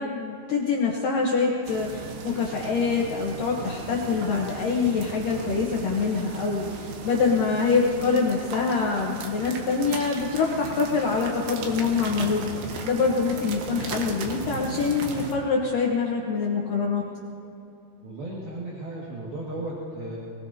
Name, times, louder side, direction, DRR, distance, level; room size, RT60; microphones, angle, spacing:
voice 1, 0.0-12.4 12.8-17.0, left 5 dB, 70° left, -2 dB, 2.1 m, -25 dB
sound 1, 1.6-15.3, right 4 dB, 90° right, 3.8 m, -37 dB
voice 2, 18.0-20.2, right 1 dB, 60° right, -5 dB, 3.6 m, -35 dB
23.5 x 20.0 x 2.8 m, 2.8 s
omnidirectional pair, 5.3 m